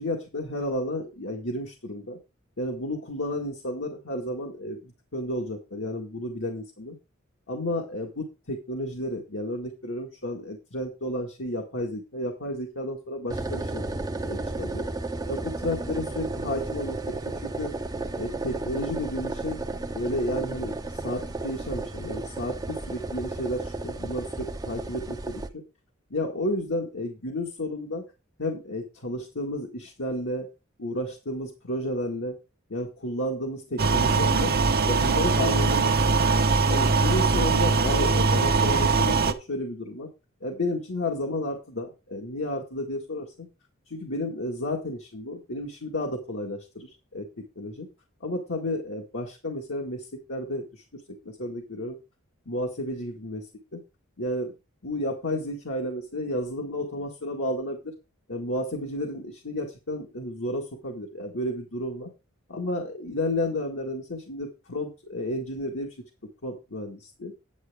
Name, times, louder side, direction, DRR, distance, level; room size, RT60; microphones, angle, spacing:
voice 1, 0.0-2.2 2.6-7.0 7.5-13.8 14.2-14.8 15.3-17.7 18.2-19.6 19.9-25.6 26.1-28.0 28.4-30.5 30.8-32.4 32.7-34.6 34.8-36.2 36.7-40.1 40.4-43.5 43.9-47.3 47.6-47.9 48.2-52.0 52.5-53.8 54.2-54.5 54.8-57.9 58.3-62.1 62.5-66.0 66.4-67.3, left 1 dB, 65° left, 0 dB, 1.9 m, -32 dB
sound 1, 13.3-25.5, right 2 dB, 20° right, 0.8 m, -33 dB
sound 2, 33.8-39.3, right 4 dB, 45° right, 1.0 m, -22 dB
9.5 x 9.2 x 3.6 m, 0.28 s
head